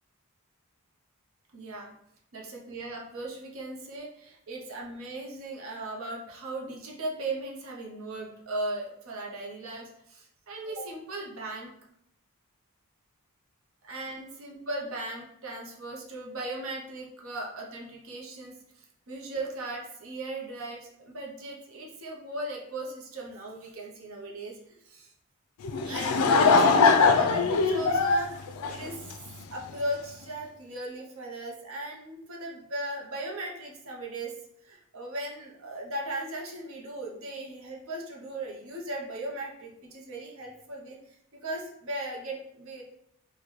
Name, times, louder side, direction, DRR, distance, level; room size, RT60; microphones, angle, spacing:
voice 1, 1.5-1.9 2.3-11.8 13.8-25.1 25.8-29.1 29.5-34.4 34.6-41.2 41.4-42.8, right 1 dB, 65° right, -1 dB, 0.6 m, -38 dB
Laughter / Crowd, 25.6-29.4, left 4 dB, 85° left, 0.4 m, -21 dB
3.8 x 2.1 x 3.0 m, 0.74 s
head